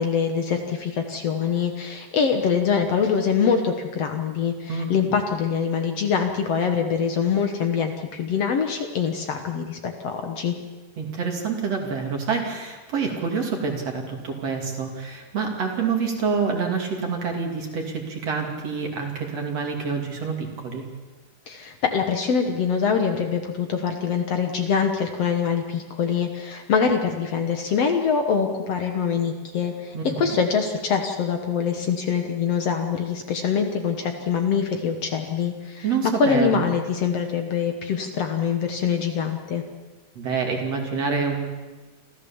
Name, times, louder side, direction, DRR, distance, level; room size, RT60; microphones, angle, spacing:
voice 1, 0.0-10.5 21.5-39.6, left 6 dB, 60° left, 5 dB, 2.1 m, -24 dB
voice 2, 11.0-20.9 29.9-30.1 35.8-36.7 40.2-41.5, right 5 dB, 55° right, 2 dB, 3.5 m, -27 dB
27.5 x 14.5 x 7.2 m, 1.2 s
omnidirectional pair, 3.7 m